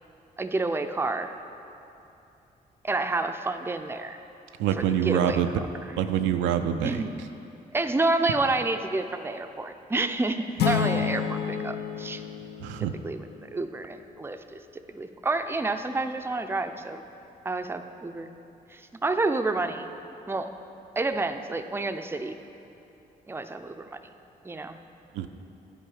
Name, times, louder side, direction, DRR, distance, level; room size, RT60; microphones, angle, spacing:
voice 1, 0.4-1.3 2.8-4.2 4.8-5.4 6.8-7.1 7.7-12.2 12.8-14.6 14.9-17.0 17.4-18.3 18.7-19.9 20.3-20.5 21.0-22.4 23.3-24.0 24.4-24.8, right 2 dB, 10° right, 7 dB, 0.5 m, -29 dB
voice 2, 4.6-5.5 6.0-7.1 12.6-12.9 25.1-25.3, right 9 dB, 80° right, 7 dB, 0.4 m, -25 dB
sound 1, 10.6-13.4, left 7 dB, 60° left, 0.6 m, -29 dB
10.0 x 4.5 x 4.8 m, 2.8 s
supercardioid pair, 50°, 19 cm